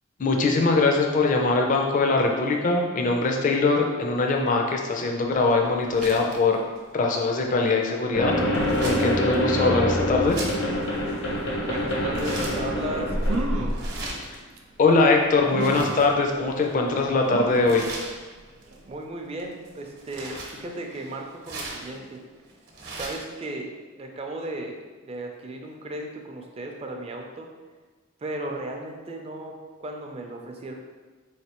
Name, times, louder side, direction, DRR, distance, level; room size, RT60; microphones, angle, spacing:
voice 1, 0.2-6.6 6.9-8.3 8.8-10.4 14.8-17.8, left 3 dB, 40° left, 2 dB, 0.4 m, -22 dB
sound 1, 5.3-23.4, right 2 dB, 55° right, 0.8 m, -41 dB
sound 2, 8.1-14.1, equal, 80° left, 1.0 m, -26 dB
voice 2, 11.6-13.8 18.9-22.2 23.0-27.5 28.2-29.6 29.8-30.7, right 1 dB, 30° right, 2 dB, 0.4 m, -35 dB
sound 3, 12.8-12.9 13.2-13.8 14.6-14.7 15.5-16.0 17.3-17.8 18.3-18.4 18.7-18.8, right 2 dB, 90° right, 0.5 m, -31 dB
4.2 x 3.2 x 2.9 m, 1.4 s
head